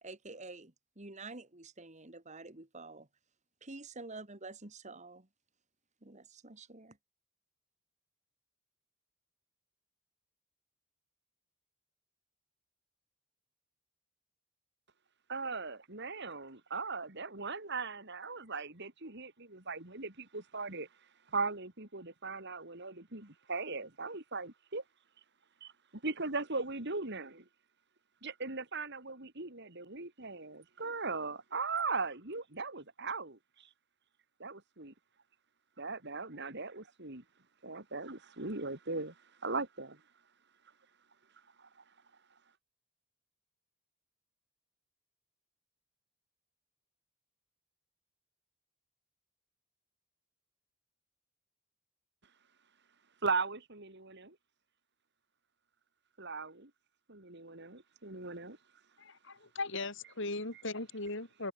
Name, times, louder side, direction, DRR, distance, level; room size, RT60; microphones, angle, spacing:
voice 1, 0.0-3.1 3.6-5.3 6.0-7.0, right 3 dB, 35° right, 2.2 m, -48 dB
voice 2, 15.3-20.9 21.3-24.8 26.0-27.4 28.2-33.7 34.4-34.9 35.8-37.2 37.6-39.1 39.4-40.0 41.6-41.7 53.2-54.3 56.2-56.7 57.1-58.6, right 4 dB, 50° right, 3.4 m, -38 dB
voice 3, 59.0-61.5, left 2 dB, 60° left, 4.8 m, -38 dB
head